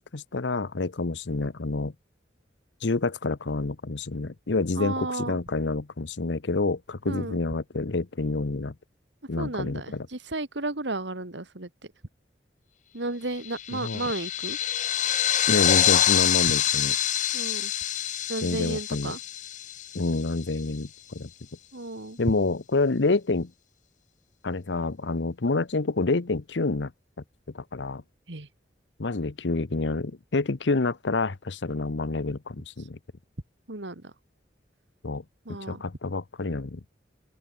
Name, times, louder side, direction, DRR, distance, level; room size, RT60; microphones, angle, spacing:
voice 1, 0.0-1.9 2.8-8.7 9.3-10.1 13.7-14.0 15.5-16.9 18.4-19.1 19.9-21.3 22.2-23.5 24.4-26.9 27.5-28.0 29.0-33.0 35.0-35.2 35.7-36.8, left 3 dB, 75° left, 0.9 m, -28 dB
voice 2, 4.7-5.4 7.1-7.4 9.4-11.7 12.9-14.6 17.3-17.7 18.3-19.2 21.7-22.4 28.3-28.5 33.7-34.1 35.5-35.8, right 2 dB, 75° right, 2.3 m, -33 dB
sound 1, 13.4-20.3, left 11 dB, 45° left, 0.7 m, -26 dB
open air
head